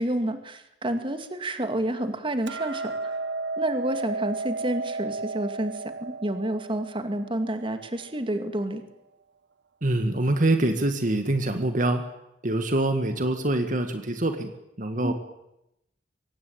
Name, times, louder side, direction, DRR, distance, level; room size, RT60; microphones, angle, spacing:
voice 1, 0.0-3.1 3.6-8.8 15.0-15.1, right 1 dB, 30° right, 8 dB, 2.1 m, -29 dB
Hammer, 2.5-8.7, right 3 dB, 80° right, 1.4 m, -34 dB
voice 2, 9.8-12.1 12.4-14.5 14.8-15.1, right 1 dB, 50° right, 7 dB, 1.8 m, -25 dB
23.5 x 18.5 x 8.8 m, 0.87 s
head